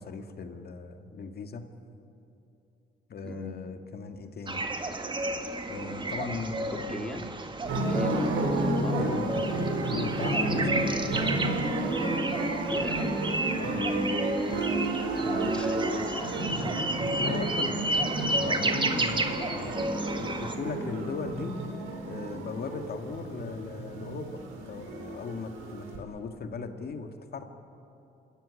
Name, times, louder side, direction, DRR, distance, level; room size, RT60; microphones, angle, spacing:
voice 1, 0.0-1.6 3.1-4.6 5.7-7.2 8.8-11.5 13.6-13.9 17.2-17.8 18.3-21.6 22.1-24.4 24.7-27.4, left 4 dB, 50° left, 6 dB, 1.9 m, -38 dB
voice 2, 3.2-3.5 6.7-7.3 7.7-9.0 10.5-10.8 12.7-13.1 15.1-16.8, left 1 dB, 5° left, 3 dB, 2.7 m, -39 dB
sound 1, 4.5-20.5, right 2 dB, 25° right, 1.9 m, -32 dB
sound 2, 7.6-26.0, right 2 dB, 85° right, 4.1 m, -31 dB
26.0 x 14.0 x 10.0 m, 2.9 s
cardioid pair, 90°, 20 cm